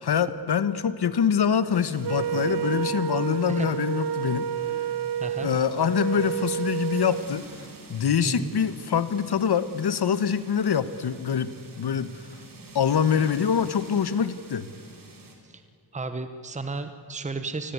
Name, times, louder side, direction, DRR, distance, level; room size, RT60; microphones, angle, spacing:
voice 1, 0.0-4.5 5.4-7.5 7.9-11.5 11.8-12.1 12.7-14.7, left 7 dB, 75° left, 14 dB, 1.4 m, -24 dB
sound 1, 1.7-15.4, right 3 dB, 55° right, 4.4 m, -47 dB
Wind instrument woodwind instrument, 2.0-7.3, right 9 dB, 75° right, 0.9 m, -30 dB
sound 2, 2.3-5.0 6.4-8.5, left 1 dB, 10° left, 1.8 m, -49 dB
voice 2, 15.9-17.7, right 3 dB, 20° right, 9 dB, 1.1 m, -33 dB
29.0 x 20.5 x 9.7 m, 2.4 s
wide cardioid pair, 175°, 40 cm